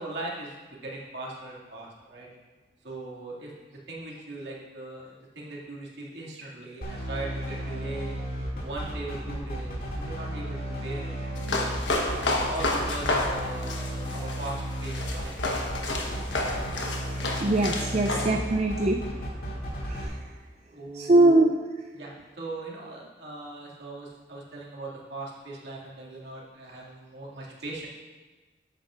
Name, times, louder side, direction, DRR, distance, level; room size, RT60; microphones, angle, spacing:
voice 1, 0.0-2.3 2.8-8.2 8.6-11.6 12.2-15.9 20.7-21.4 21.9-27.9, right 2 dB, 75° right, -5 dB, 2.3 m, -39 dB
sound 1, 6.8-20.0, equal, 50° left, 2.3 m, -34 dB
sound 2, 11.4-18.3, left 2 dB, 80° left, 1.2 m, -30 dB
voice 2, 17.1-19.0 19.8-20.3 20.9-21.6, right 2 dB, 35° right, 3 dB, 0.4 m, -22 dB
13.5 x 8.9 x 2.5 m, 1.3 s
head